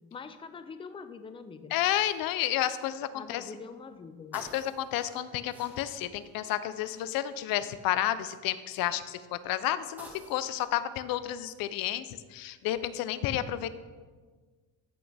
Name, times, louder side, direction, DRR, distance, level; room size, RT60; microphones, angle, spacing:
voice 1, 0.1-1.8 3.1-4.4, left 5 dB, 15° left, 10 dB, 0.4 m, -44 dB
voice 2, 1.7-3.4 4.3-13.7, left 12 dB, 70° left, 14 dB, 0.6 m, -31 dB
sound 1, 2.1-2.5 3.0-3.1 3.3-8.5 9.1-10.7, right 1 dB, 5° right, 1.7 m, -52 dB
14.5 x 6.3 x 3.4 m, 1.4 s
cardioid pair, 140°, 37 cm